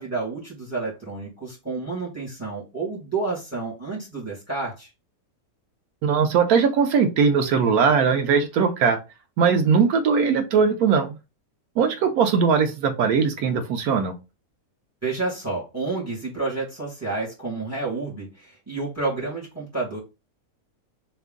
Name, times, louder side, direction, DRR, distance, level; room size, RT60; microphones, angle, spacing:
voice 1, 0.0-4.9 15.0-20.0, right 3 dB, 10° right, 1.8 m, -30 dB
voice 2, 6.0-9.0 9.4-11.2 11.8-14.1, right 6 dB, 90° right, 1.2 m, -20 dB
3.5 x 2.9 x 3.7 m
omnidirectional pair, 1.5 m